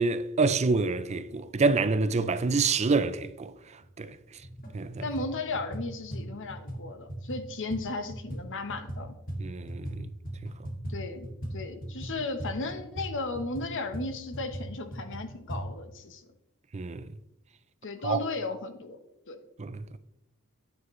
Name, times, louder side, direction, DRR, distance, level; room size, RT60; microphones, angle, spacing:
voice 1, 0.0-3.5 4.0-4.2 4.7-5.0 9.4-10.1 10.4-10.5 16.7-17.1 18.0-18.2 19.6-19.9, right 4 dB, 30° right, 0.4 m, -27 dB
sound 1, 3.8-3.9 4.4-4.7 5.0-10.0 10.2-15.6, right 1 dB, 40° left, 2.2 m, -38 dB
voice 2, 5.0-9.1 10.9-16.3 17.8-19.0 19.3-19.4, left 3 dB, 60° left, 1.1 m, -35 dB
9.5 x 9.4 x 3.2 m
head